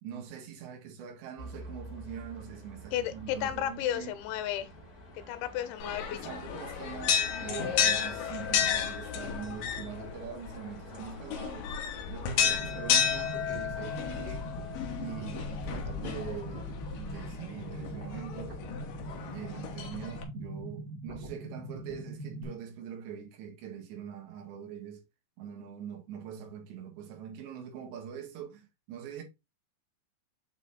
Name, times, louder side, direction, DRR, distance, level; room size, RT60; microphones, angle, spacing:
voice 1, 0.0-4.1 6.1-11.7 12.1-14.5 15.0-16.7 17.0-18.6 19.3-25.0 25.4-29.2, right 8 dB, 75° right, 3.9 m, -43 dB
sound 1, 1.4-17.3, left 1 dB, 35° left, 1.6 m, -49 dB
voice 2, 2.9-4.7 5.3-6.2, left 11 dB, 85° left, 3.1 m, -33 dB
sound 2, 5.8-20.2, left 8 dB, 65° left, 2.4 m, -32 dB
sound 3, 12.4-22.4, right 1 dB, 30° right, 2.0 m, -42 dB
8.1 x 4.0 x 4.1 m
omnidirectional pair, 5.2 m